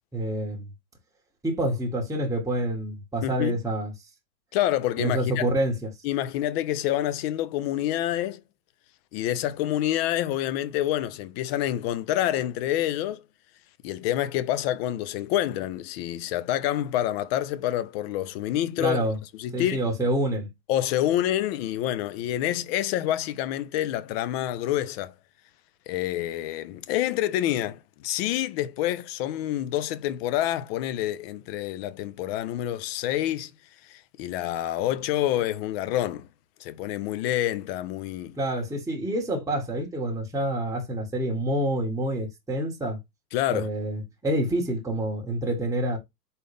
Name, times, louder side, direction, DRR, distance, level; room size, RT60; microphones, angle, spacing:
voice 1, 0.1-0.7 1.4-3.9 5.0-5.7 18.8-19.2 19.5-20.5 38.4-43.0 43.5-46.0, right 1 dB, 5° right, 1.5 m, -27 dB
voice 2, 3.2-3.5 4.5-5.5 6.0-8.4 9.1-13.2 13.8-19.0 19.4-19.8 20.7-25.1 25.9-33.5 33.9-36.3 36.6-38.4 43.3-43.7, left 13 dB, 40° left, 0.5 m, -27 dB
4.1 x 3.8 x 3.4 m
hypercardioid pair, 125°, 49 cm